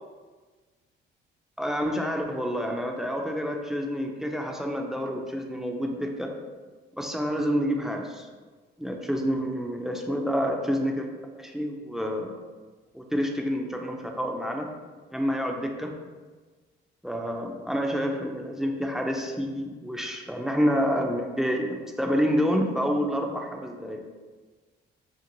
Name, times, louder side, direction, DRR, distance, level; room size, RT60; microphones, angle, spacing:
voice 1, 1.6-6.3 6.9-8.3 8.8-11.0 11.3-12.3 12.9-14.7 15.1-15.9 17.0-24.0, equal, ahead, 2 dB, 0.3 m, -28 dB
2.5 x 2.5 x 2.9 m, 1.4 s
cardioid pair, 90°, 20 cm